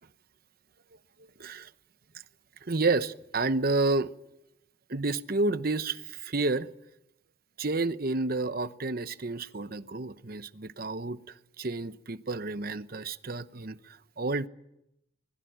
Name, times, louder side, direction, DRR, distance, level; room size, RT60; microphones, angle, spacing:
voice 1, 1.4-1.7 2.6-4.1 4.9-6.7 7.6-11.2 11.6-14.5, right 3 dB, 50° right, 13 dB, 0.9 m, -30 dB
24.0 x 21.0 x 9.3 m, 0.85 s
head